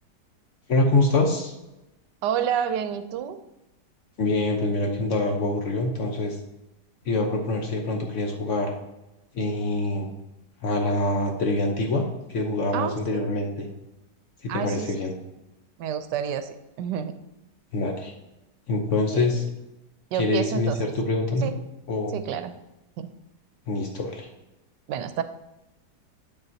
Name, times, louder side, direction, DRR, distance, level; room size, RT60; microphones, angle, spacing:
voice 1, 0.7-1.5 4.2-6.4 7.1-8.7 9.3-10.1 10.6-13.7 14.4-15.1 17.7-18.1 18.7-19.4 20.2-21.5 21.9-22.2 23.7-24.3, left 2 dB, 55° left, 3 dB, 1.0 m, -25 dB
voice 2, 2.2-3.4 12.7-13.3 14.5-14.9 15.8-17.2 19.1-19.4 20.1-20.8 21.4-21.5 22.1-22.5 23.0-23.1 24.9-25.2, right 9 dB, 80° right, 10 dB, 1.2 m, -29 dB
8.0 x 6.9 x 2.7 m, 0.96 s
omnidirectional pair, 1.8 m